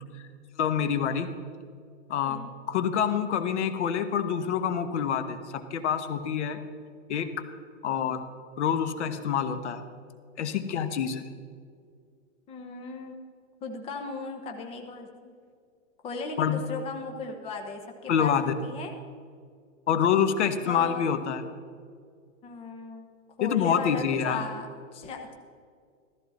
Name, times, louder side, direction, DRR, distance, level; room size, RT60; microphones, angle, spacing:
voice 1, 0.6-1.3 2.1-6.6 7.1-7.3 7.8-8.2 8.6-9.8 10.4-11.2 16.4-16.6 18.1-18.5 19.9-21.4 23.4-24.4, left 8 dB, 60° left, 10 dB, 1.3 m, -26 dB
voice 2, 12.5-13.2 13.6-15.1 16.0-18.9 20.7-21.2 22.4-23.1 23.4-25.3, left 4 dB, 15° left, 3 dB, 1.0 m, -37 dB
15.0 x 14.0 x 4.2 m, 2.1 s
hypercardioid pair, 155°, 38 cm